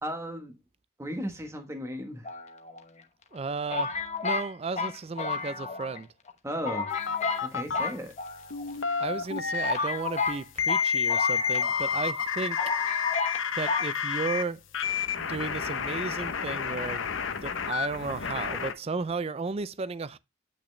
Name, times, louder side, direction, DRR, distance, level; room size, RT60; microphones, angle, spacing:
voice 1, 0.0-0.6 1.0-2.3 6.4-6.9 7.4-8.1, equal, 15° right, 1.2 m, -35 dB
sound 1, 2.2-3.0 3.7-6.0 6.3-6.4 6.6-7.5 7.7-8.7 9.3-9.4 9.6-11.9 12.2-12.3 12.6-13.4 13.7-13.9, left 4 dB, 35° left, 1.0 m, -31 dB
voice 2, 3.3-3.9 4.2-6.1 9.0-12.6 13.6-14.6 15.2-17.0 17.4-20.2, right 4 dB, 30° right, 0.4 m, -34 dB
sound 2, 6.9-7.8 8.5-9.9 10.6-14.4 14.7-18.7, left 6 dB, 75° left, 0.8 m, -30 dB
8.7 x 5.8 x 3.2 m
head